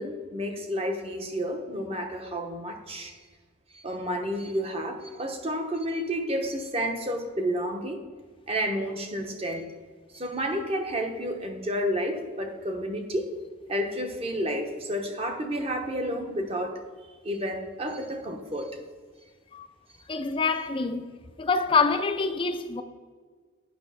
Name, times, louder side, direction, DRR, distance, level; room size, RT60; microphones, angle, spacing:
voice 1, 0.0-3.1 3.7-8.0 8.5-9.6 10.1-13.3 13.7-16.8 17.2-18.8, equal, 30° right, 1.0 m, -30 dB
voice 2, 20.1-21.1 21.4-22.8, left 4 dB, 25° left, 0.4 m, -26 dB
8.8 x 5.5 x 5.7 m
head